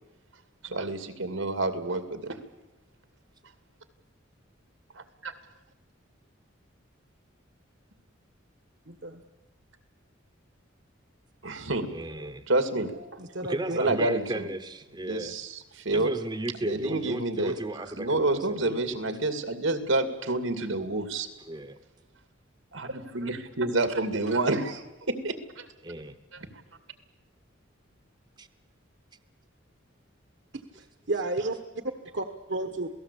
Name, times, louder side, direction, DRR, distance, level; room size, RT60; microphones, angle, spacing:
voice 1, 0.6-2.4 5.0-5.3 11.4-13.2 13.8-14.5 15.0-16.1 16.6-17.6 17.9-21.3 22.7-25.7 26.3-26.5, right 2 dB, 85° right, 9 dB, 2.5 m, -29 dB
voice 2, 8.8-9.2 13.2-14.1 30.5-32.9, right 2 dB, 60° right, 7 dB, 1.4 m, -33 dB
voice 3, 11.9-12.4 13.5-15.3 15.9-18.8 21.5-21.8 25.8-26.1 28.4-28.5, right 1 dB, 20° right, 9 dB, 1.0 m, -34 dB
27.5 x 18.0 x 8.5 m, 1.0 s
head